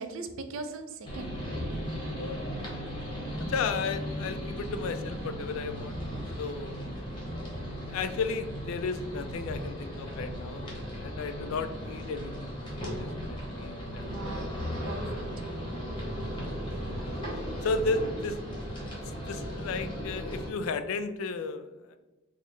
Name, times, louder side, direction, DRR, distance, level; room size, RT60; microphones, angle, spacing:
voice 1, 0.0-1.4 14.0-14.5 14.9-15.5, right 3 dB, 65° right, 7 dB, 0.4 m, -40 dB
sound 1, 1.0-20.5, equal, 25° left, 0.9 m, -36 dB
voice 2, 2.2-2.5 3.4-6.0 6.4-7.0 7.9-14.4 17.0-17.2 17.6-18.4 18.9-22.0, left 4 dB, 70° left, 9 dB, 0.3 m, -34 dB
4.4 x 2.0 x 3.1 m, 1.1 s
head